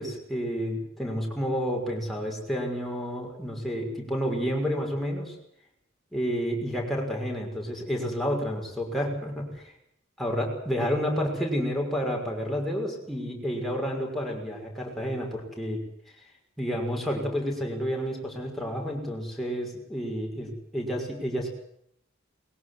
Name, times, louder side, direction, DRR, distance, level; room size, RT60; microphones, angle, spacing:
voice 1, 0.0-5.3 6.1-9.7 10.2-15.8 16.6-21.5, equal, ahead, -2 dB, 6.1 m, -30 dB
21.0 x 17.0 x 9.6 m, 0.70 s
head